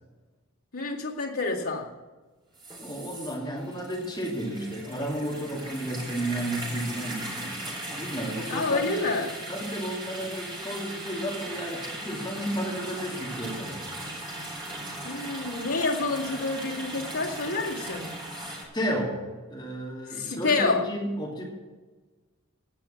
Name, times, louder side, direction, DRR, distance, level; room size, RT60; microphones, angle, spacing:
voice 1, 0.7-1.9 8.5-9.3 15.0-18.1 20.1-20.8, left 3 dB, 80° left, -2 dB, 2.1 m, -28 dB
sound 1, 2.5-18.6, right 1 dB, 20° right, 4.0 m, -38 dB
voice 2, 2.8-7.6 7.9-9.2 9.5-13.8 18.3-19.2 19.5-21.4, right 1 dB, 20° left, -3 dB, 2.9 m, -32 dB
16.5 x 5.9 x 7.5 m, 1.3 s
head